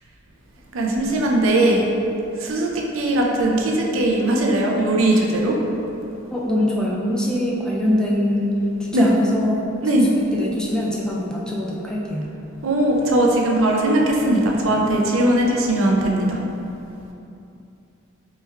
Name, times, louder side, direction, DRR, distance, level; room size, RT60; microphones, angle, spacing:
voice 1, 0.7-1.9 2.4-5.6 8.9-9.1 9.8-10.1 12.6-16.4, right 1 dB, 75° right, -1 dB, 0.5 m, -19 dB
voice 2, 6.3-8.5 8.8-9.7 10.0-12.3, left 1 dB, 5° left, -4 dB, 0.3 m, -23 dB
3.4 x 3.3 x 3.2 m, 2.8 s
head